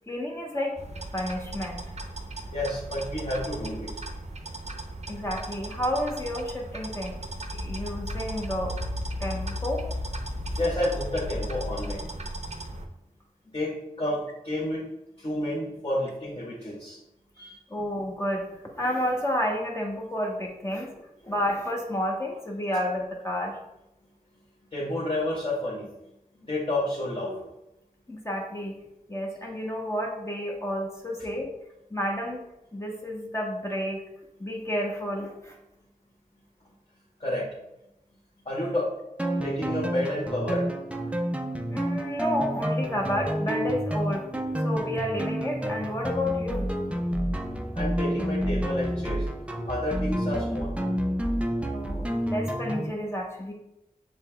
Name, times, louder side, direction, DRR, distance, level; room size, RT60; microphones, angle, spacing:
voice 1, 0.1-0.8 1.1-1.9 5.1-8.8 9.2-9.9 17.7-20.9 21.2-23.6 28.1-28.7 29.1-31.5 31.9-32.4 32.7-34.0 34.4-35.6 41.7-44.2 44.6-46.7 51.7-53.5, left 1 dB, 20° left, -1 dB, 0.9 m, -30 dB
sound 1, 0.8-12.9, right 2 dB, 50° right, 0.7 m, -38 dB
voice 2, 2.5-3.9 10.6-12.1 13.5-14.8 15.2-17.0 17.4-17.6 24.7-25.9 26.4-27.4 37.2-37.5 38.4-39.0 39.4-40.7 47.7-49.2 49.7-50.7, left 1 dB, 40° left, -7 dB, 1.2 m, -30 dB
sound 2, 7.2-11.9, left 2 dB, 75° left, 0.6 m, -35 dB
sound 3, 39.2-52.9, equal, 10° right, 0.5 m, -29 dB
6.7 x 3.3 x 2.2 m, 0.89 s
wide cardioid pair, 55°, 15 cm